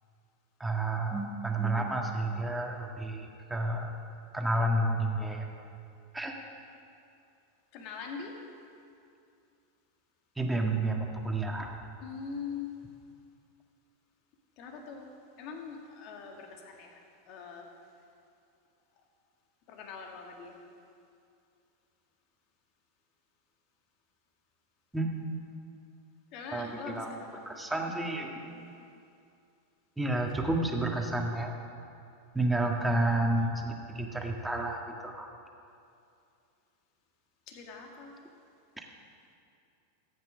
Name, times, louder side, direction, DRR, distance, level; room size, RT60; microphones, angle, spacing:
voice 1, 0.6-3.9 4.3-5.5 6.1-6.4 10.4-11.7 24.9-25.1 26.5-27.2 27.4-28.4 30.0-31.6 32.3-35.3, right 2 dB, 5° right, 1 dB, 1.7 m, -30 dB
voice 2, 7.7-8.3 12.0-12.7 14.6-15.1 15.4-17.0 17.3-17.7 19.7-20.6 26.3-27.7 28.4-28.7 37.5-38.1, left 5 dB, 50° left, 2 dB, 1.9 m, -42 dB
14.0 x 9.1 x 6.2 m, 2.5 s
hypercardioid pair, 95°, 0 cm